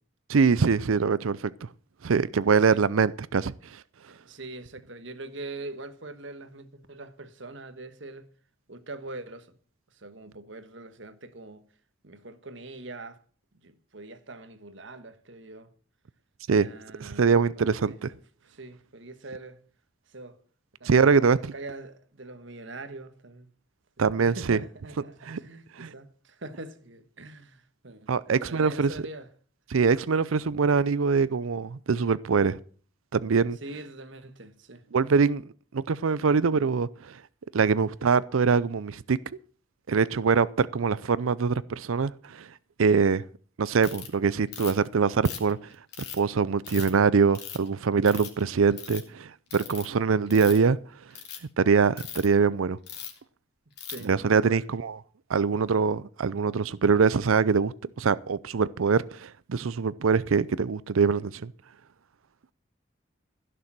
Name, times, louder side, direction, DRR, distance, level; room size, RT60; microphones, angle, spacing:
voice 1, 0.3-1.5 2.0-3.5 16.5-16.7 17.0-18.1 20.8-21.4 24.0-24.6 25.3-25.4 25.8-25.9 28.1-28.9 29.7-32.6 33.1-33.6 34.9-35.4 35.7-37.2 37.5-39.2 39.9-42.5 42.8-43.2 43.6-45.6 46.1-50.8 51.6-52.8 54.0-55.0 55.3-61.5, right 5 dB, 85° right, 0.5 m, -23 dB
voice 2, 4.1-8.3 8.7-9.5 9.9-11.6 12.0-13.2 13.6-15.7 16.6-18.0 18.4-19.6 20.1-20.4 20.8-23.5 24.0-29.3 30.1-30.3 33.6-34.8 53.9-54.6, right 2 dB, 65° right, 1.4 m, -43 dB
Ratchet pawl, 43.8-44.1 44.5-44.9 45.3-46.2 46.6-46.9 47.4-47.7 48.1-48.4 48.7-49.0 49.5-49.9 50.3-50.7 51.1-51.4 52.0-52.3 52.9-53.2 53.8-54.0, left 9 dB, 50° left, 3.2 m, -39 dB
16.0 x 6.8 x 7.5 m
head